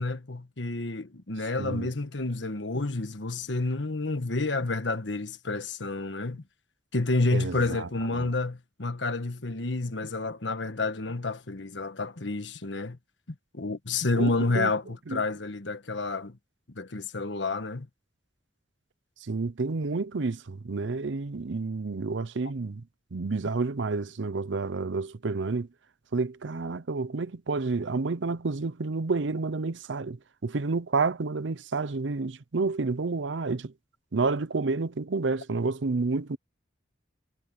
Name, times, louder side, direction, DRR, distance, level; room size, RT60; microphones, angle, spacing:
voice 1, 0.0-6.4 6.9-13.0 13.5-16.4 16.7-17.9, left 3 dB, 75° left, 1.4 m, -29 dB
voice 2, 1.6-1.9 7.3-7.9 8.2-8.3 14.2-14.7 15.1-15.2 19.3-22.8 23.1-25.7 26.1-30.2 30.4-33.7 34.1-36.4, right 3 dB, 85° right, 0.7 m, -29 dB
head